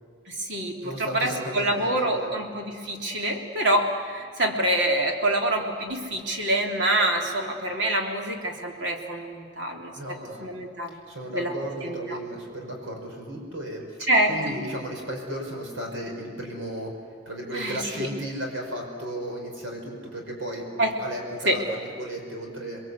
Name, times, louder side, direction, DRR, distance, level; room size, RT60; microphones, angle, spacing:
voice 1, 0.3-9.9 10.4-11.0 11.3-11.5 11.8-12.2 14.1-14.5 17.5-18.1 20.8-20.9 21.4-21.6, right 1 dB, 60° right, 1 dB, 3.3 m, -26 dB
voice 2, 0.8-2.3 10.0-10.5 10.9-16.9 17.3-20.6 21.0-22.8, right 1 dB, 80° right, 1 dB, 5.3 m, -35 dB
28.0 x 22.0 x 8.2 m, 2.2 s
head